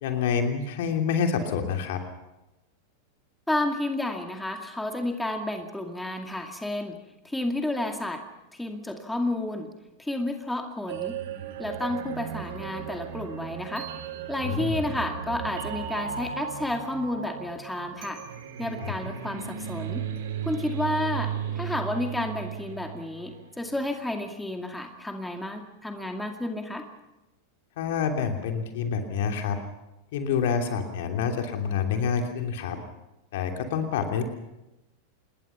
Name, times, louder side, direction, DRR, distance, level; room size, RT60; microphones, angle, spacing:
voice 1, 0.0-2.0 14.4-14.8 18.8-18.9 27.8-29.6 30.1-32.8 33.3-34.2, left 6 dB, 55° left, 4 dB, 3.0 m, -27 dB
voice 2, 3.5-7.0 7.2-8.2 8.5-9.7 10.0-11.2 11.6-13.9 14.3-18.2 18.6-20.0 20.4-26.9, left 1 dB, 5° left, 4 dB, 2.3 m, -31 dB
sound 1, 10.9-23.9, right 8 dB, 55° right, 2.8 m, -35 dB
27.0 x 20.5 x 5.9 m, 0.96 s
figure-of-eight pair, 90°, 0 cm